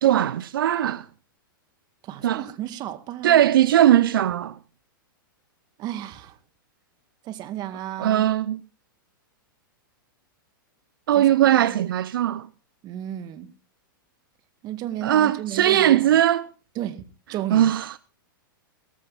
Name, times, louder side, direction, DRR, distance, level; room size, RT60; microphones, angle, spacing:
voice 1, 0.0-1.1 2.2-2.4 3.2-4.6 8.0-8.6 11.1-12.5 15.0-16.5 17.5-18.0, right 12 dB, 75° right, 0.7 m, -19 dB
voice 2, 2.0-3.4 5.8-6.4 7.2-8.3 11.1-11.8 12.8-13.5 14.6-16.1 16.8-17.7, right 12 dB, 35° right, 1.8 m, -33 dB
17.5 x 15.0 x 4.0 m
hypercardioid pair, 125°, 12 cm